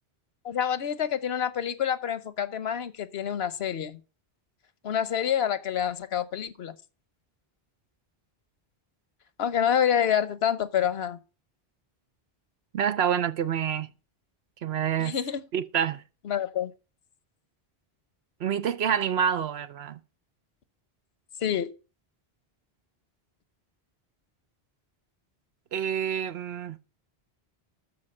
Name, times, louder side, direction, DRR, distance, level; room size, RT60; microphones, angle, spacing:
voice 1, 0.4-4.0 4.8-6.7 9.4-11.2 15.0-15.4 16.2-16.7 21.4-21.7, left 9 dB, 80° left, 1.1 m, -27 dB
voice 2, 12.7-13.9 14.6-15.1 15.5-16.0 18.4-20.0 25.7-26.8, right 8 dB, 90° right, 1.0 m, -27 dB
13.0 x 4.8 x 6.5 m
omnidirectional pair, 1.0 m